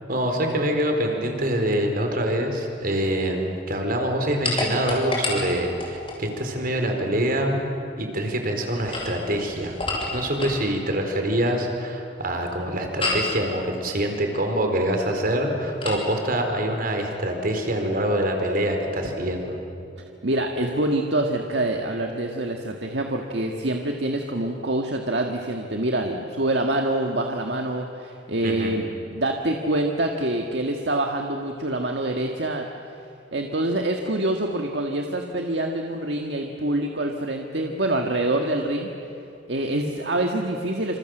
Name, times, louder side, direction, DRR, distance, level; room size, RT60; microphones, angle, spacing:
voice 1, 0.1-9.8 10.1-19.6 28.4-28.7, right 1 dB, 55° right, 4 dB, 4.4 m, -25 dB
sound 1, 4.4-6.2 8.7-10.7 13.0-13.4 15.8-16.1, left 2 dB, 30° left, 6.8 m, -29 dB
voice 2, 20.2-32.7 33.3-38.9 39.5-41.0, right 1 dB, 70° right, 2 dB, 1.7 m, -26 dB
27.5 x 27.0 x 7.9 m, 2.6 s
head